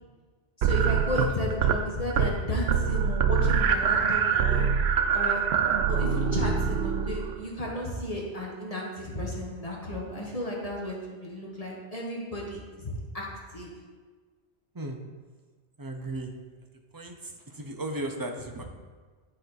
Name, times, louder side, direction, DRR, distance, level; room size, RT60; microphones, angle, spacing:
voice 1, 0.6-4.7 5.1-5.4 5.9-13.7 18.6-18.7, left 1 dB, 35° left, -3 dB, 1.2 m, -33 dB
sound 1, 0.6-1.8 2.1-2.4 2.7-7.4, right 7 dB, 70° right, 0.8 m, -24 dB
voice 2, 15.8-16.3 16.9-17.1 17.5-18.6, right 1 dB, 25° right, 3 dB, 0.5 m, -35 dB
9.3 x 4.4 x 4.0 m, 1.4 s
omnidirectional pair, 1.2 m